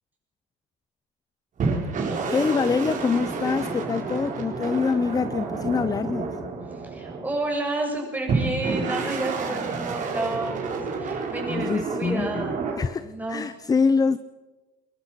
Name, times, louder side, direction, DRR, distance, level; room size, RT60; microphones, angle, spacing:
sound 1, 1.6-7.5 8.3-12.8, right 4 dB, 40° right, 4.6 m, -29 dB
voice 1, 2.3-6.4 11.5-14.2, left 5 dB, 20° left, 0.6 m, -25 dB
voice 2, 6.7-12.6 13.0-13.5, right 2 dB, 10° right, 6.7 m, -30 dB
22.0 x 20.5 x 6.0 m
cardioid pair, 115°, 21 cm